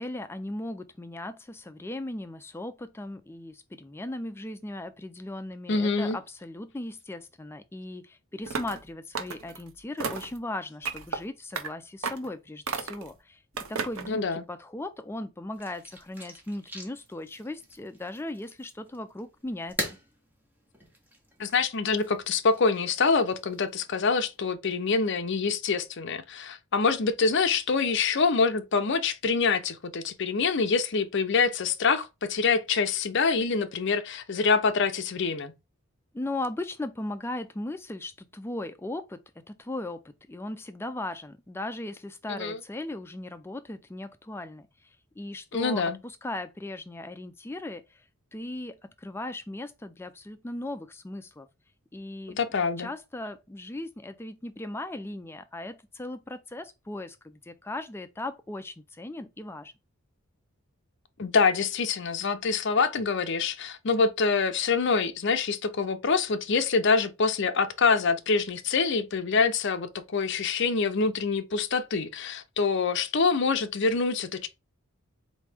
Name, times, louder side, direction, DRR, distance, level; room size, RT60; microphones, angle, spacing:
voice 1, 0.0-13.4 13.7-19.9 36.1-48.0 48.3-51.5 51.9-52.4 52.8-59.7, left 1 dB, 10° left, 0.3 m, -37 dB
voice 2, 5.7-6.2 14.1-14.4 21.4-35.5 42.3-42.6 45.5-46.0 52.3-52.9 61.2-74.5, left 4 dB, 55° left, 0.6 m, -25 dB
sound 1, 8.5-8.8 9.1-9.6 10.0-10.4 10.8-11.2 11.5-11.7 12.0-12.3 12.7-13.1 13.6-14.1, right 5 dB, 70° right, 0.7 m, -33 dB
sound 2, 15.5-24.4, equal, 10° right, 1.0 m, -43 dB
4.2 x 3.1 x 3.4 m
head